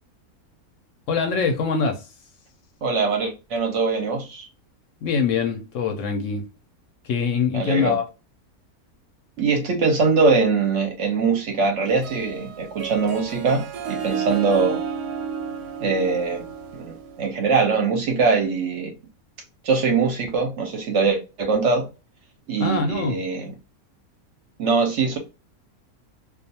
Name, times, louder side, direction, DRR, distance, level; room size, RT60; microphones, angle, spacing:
voice 1, 1.1-2.1 5.0-6.5 7.0-8.0 22.6-23.2, left 5 dB, 65° left, 0.8 m, -23 dB
voice 2, 2.8-4.5 7.5-8.0 9.4-13.6 13.9-14.8 15.8-16.4 16.7-18.9 19.6-21.9 22.5-23.5 24.6-25.2, right 4 dB, 60° right, 0.8 m, -22 dB
Harp, 11.9-17.4, right 7 dB, 90° right, 1.1 m, -32 dB
2.4 x 2.3 x 2.6 m
omnidirectional pair, 1.6 m